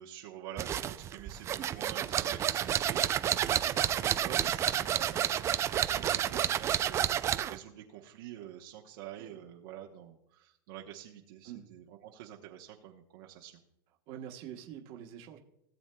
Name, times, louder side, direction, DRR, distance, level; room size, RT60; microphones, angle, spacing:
voice 1, 0.0-13.5, right 11 dB, 65° right, -1 dB, 1.0 m, -47 dB
sound 1, 0.6-7.6, right 10 dB, 20° right, 0.3 m, -30 dB
voice 2, 14.1-15.4, right 10 dB, 45° right, 3 dB, 1.2 m, -45 dB
17.5 x 7.1 x 2.3 m, 0.81 s
supercardioid pair, 135°, 12 cm